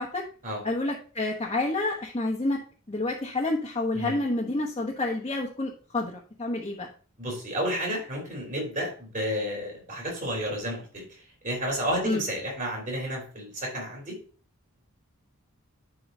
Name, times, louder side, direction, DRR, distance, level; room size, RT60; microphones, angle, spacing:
voice 1, 0.6-2.6 2.9-6.9 12.0-12.2, left 2 dB, 25° left, -2 dB, 1.0 m, -29 dB
voice 2, 7.2-14.2, equal, 40° right, -1 dB, 3.8 m, -31 dB
11.0 x 4.7 x 2.7 m, 0.39 s
head